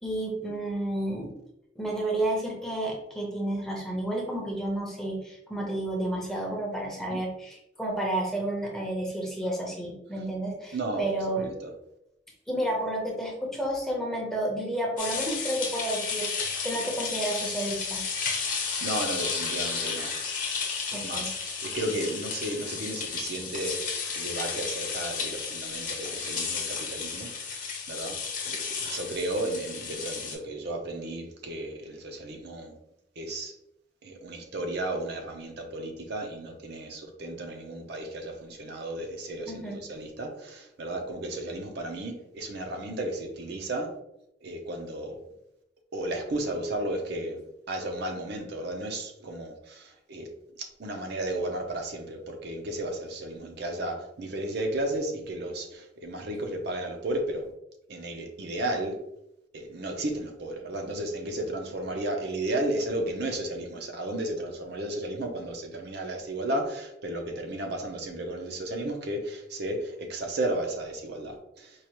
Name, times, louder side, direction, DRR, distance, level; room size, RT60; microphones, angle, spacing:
voice 1, 0.0-1.3 1.8-11.5 12.5-18.0 20.9-21.5 39.5-39.8, right 1 dB, 5° left, -1 dB, 0.7 m, -31 dB
voice 2, 10.7-11.7 18.8-20.1 20.9-21.3 21.6-23.8 24.2-27.6 27.9-28.1 28.5-28.6 28.9-32.7 33.2-33.5 34.0-43.9 44.4-45.2 45.9-47.4 47.7-50.3 50.6-57.5 57.9-58.9 59.5-71.7, right 1 dB, 60° right, 3 dB, 0.6 m, -33 dB
sound 1, 15.0-30.3, left 5 dB, 45° left, 0.9 m, -33 dB
4.6 x 2.4 x 3.0 m, 0.82 s
head